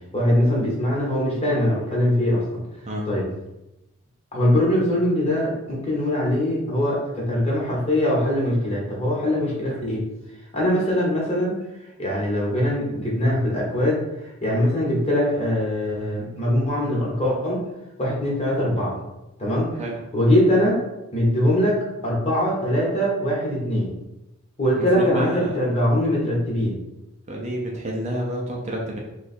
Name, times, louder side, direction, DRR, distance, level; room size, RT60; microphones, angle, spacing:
voice 1, 0.1-2.4 3.0-3.3 4.3-10.0 10.5-11.6 12.0-14.0 14.4-17.6 18.0-18.9 19.4-19.7 20.1-20.8 21.1-23.9 24.6-26.8, left 1 dB, 30° left, -5 dB, 1.1 m, -22 dB
voice 2, 24.8-25.5 27.3-29.0, equal, 30° right, -2 dB, 0.5 m, -29 dB
3.0 x 2.3 x 4.2 m, 0.94 s
head